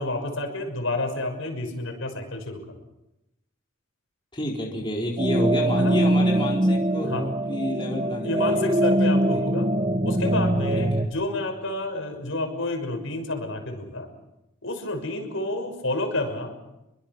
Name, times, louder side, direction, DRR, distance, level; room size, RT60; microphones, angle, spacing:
voice 1, 0.0-2.6 5.8-5.9 7.1-7.2 8.2-9.7 10.0-14.1 14.6-16.5, left 2 dB, 70° left, 4 dB, 6.4 m, -29 dB
voice 2, 4.3-8.8 9.3-9.4 10.8-11.0, left 1 dB, 25° left, -2 dB, 4.2 m, -30 dB
sound 1, 5.2-11.1, right 1 dB, 25° right, 1.2 m, -23 dB
29.5 x 23.5 x 6.2 m, 0.93 s
head